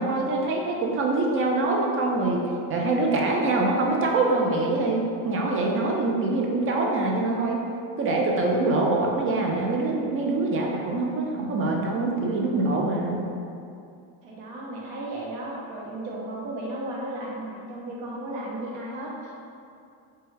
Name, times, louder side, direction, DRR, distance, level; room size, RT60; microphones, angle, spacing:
voice 1, 0.0-2.4 2.7-7.6 8.0-13.2, right 2 dB, 30° right, -1 dB, 0.4 m, -24 dB
voice 2, 14.2-19.3, right 1 dB, 60° right, -3 dB, 0.9 m, -34 dB
3.1 x 2.3 x 3.2 m, 2.5 s
supercardioid pair, 95°, 49 cm